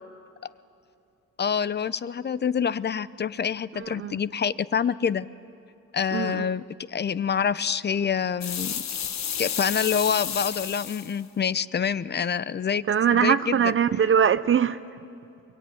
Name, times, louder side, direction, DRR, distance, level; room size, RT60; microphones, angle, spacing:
voice 1, 1.4-5.3 5.9-8.8 9.4-12.8 13.1-13.7, left 7 dB, 35° left, 16 dB, 0.7 m, -26 dB
voice 2, 3.7-4.2 6.1-6.5 12.9-14.8, right 8 dB, 45° right, 13 dB, 0.7 m, -22 dB
sound 1, 8.4-11.2, left 8 dB, 65° left, 1.4 m, -31 dB
23.5 x 22.5 x 9.4 m, 2.6 s
cardioid pair, 90°, 30 cm